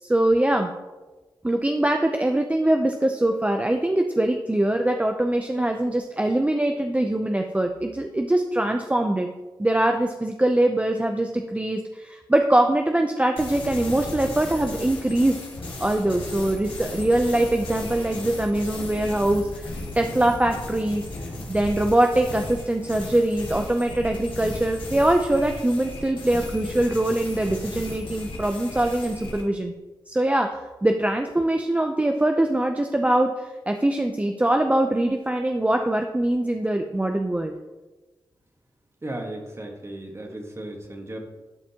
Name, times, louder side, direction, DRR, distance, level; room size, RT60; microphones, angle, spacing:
voice 1, 0.0-0.7 1.4-9.3 9.6-15.4 15.8-21.0 21.5-29.7 30.1-37.5, right 1 dB, 15° right, 4 dB, 0.5 m, -23 dB
sound 1, 13.4-29.4, left 2 dB, 80° left, 1.6 m, -36 dB
voice 2, 39.0-41.2, right 1 dB, 30° right, 2 dB, 1.5 m, -35 dB
11.5 x 5.1 x 2.9 m, 1.2 s
cardioid pair, 60°, 9 cm